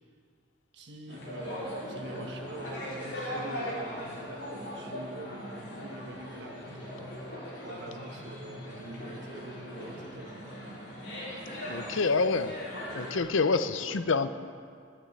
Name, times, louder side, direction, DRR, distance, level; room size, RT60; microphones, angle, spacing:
voice 1, 0.7-7.2 7.6-10.4 11.7-12.1 13.8-14.0, right 1 dB, 65° right, 3 dB, 1.5 m, -45 dB
sound 1, 1.1-13.2, equal, 60° left, 4.5 m, -39 dB
voice 2, 11.7-12.6 12.9-14.3, left 4 dB, 90° left, 12 dB, 0.6 m, -27 dB
12.0 x 9.4 x 8.0 m, 2.2 s
head